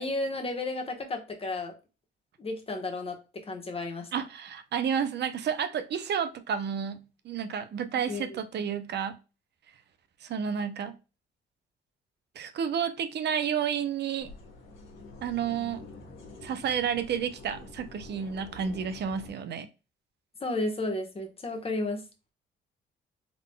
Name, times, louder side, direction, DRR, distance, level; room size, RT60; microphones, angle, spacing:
voice 1, 0.0-1.7 2.4-3.2 3.5-4.1 8.1-8.4 20.4-22.0, left 2 dB, 30° left, 1.2 m, -32 dB
voice 2, 4.1-9.2 10.2-11.0 12.4-14.3 15.2-15.8 16.4-19.7, right 7 dB, 60° right, 0.6 m, -31 dB
sound 1, 14.2-19.3, left 2 dB, 80° left, 1.4 m, -47 dB
3.7 x 3.6 x 2.2 m
cardioid pair, 90°, 20 cm